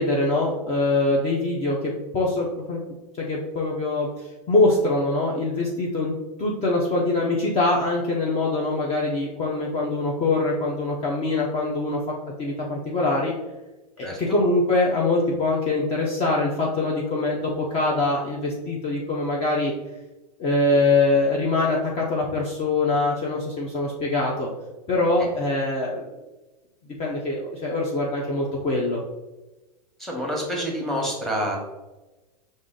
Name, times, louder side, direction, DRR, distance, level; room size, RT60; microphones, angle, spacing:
voice 1, 0.0-3.0 3.3-4.1 4.5-13.3 14.0-19.7 20.4-24.5 24.9-26.0 27.0-29.0, left 2 dB, 30° left, -3 dB, 0.8 m, -23 dB
voice 2, 14.0-14.4 30.0-31.6, equal, ahead, -1 dB, 1.3 m, -28 dB
4.9 x 2.7 x 3.7 m, 1.1 s
hypercardioid pair, 105°, 21 cm